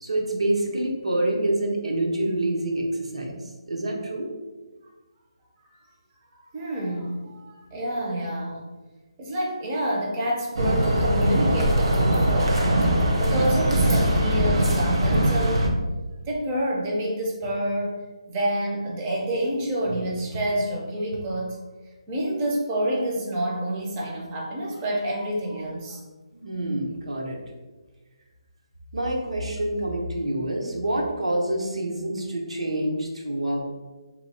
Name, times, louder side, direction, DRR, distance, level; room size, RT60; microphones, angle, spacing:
voice 1, 0.0-4.3 26.3-27.4 28.9-33.7, right 1 dB, 90° right, 0 dB, 0.9 m, -27 dB
voice 2, 6.3-8.6 9.2-12.9 13.2-15.7 16.3-18.0 18.3-21.6 22.1-26.0, right 1 dB, 15° right, -2 dB, 0.5 m, -28 dB
sound 1, 10.6-15.7, right 1 dB, 60° right, 0.8 m, -21 dB
2.9 x 2.7 x 4.2 m, 1.2 s
hypercardioid pair, 175°, 3 cm